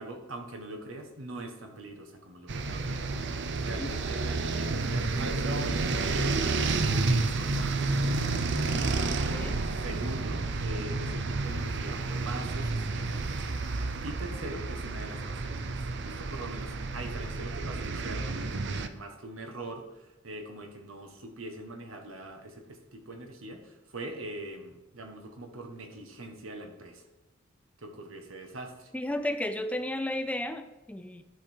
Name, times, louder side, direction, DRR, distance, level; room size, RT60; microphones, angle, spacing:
voice 1, 0.0-2.7 3.6-8.4 9.8-13.3 14.0-15.7 16.0-27.0 27.8-28.9, right 1 dB, 85° right, 4 dB, 1.5 m, -42 dB
sound 1, 2.5-18.9, right 3 dB, 60° right, 0.6 m, -30 dB
voice 2, 9.3-9.6 28.9-31.2, left 1 dB, 5° left, 9 dB, 0.5 m, -33 dB
12.0 x 5.2 x 4.5 m, 1.0 s
head